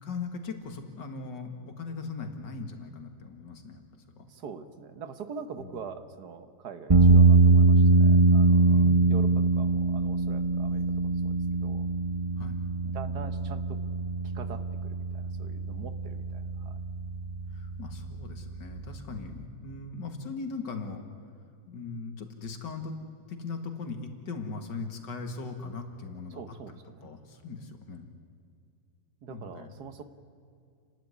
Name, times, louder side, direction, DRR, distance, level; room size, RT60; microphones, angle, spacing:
voice 1, 0.0-3.8 4.2-4.3 5.6-5.9 8.7-9.4 12.4-12.6 17.5-21.0 21.7-23.0 23.3-26.6 27.0-28.1 29.3-29.7, left 4 dB, 80° left, 5 dB, 2.5 m, -39 dB
voice 2, 4.3-11.9 12.8-13.8 14.4-16.8 26.3-27.1 29.2-30.0, right 6 dB, 65° right, 10 dB, 1.7 m, -44 dB
sound 1, 6.9-19.4, right 3 dB, 25° right, 0.9 m, -23 dB
29.5 x 12.0 x 9.8 m, 2.4 s
omnidirectional pair, 1.9 m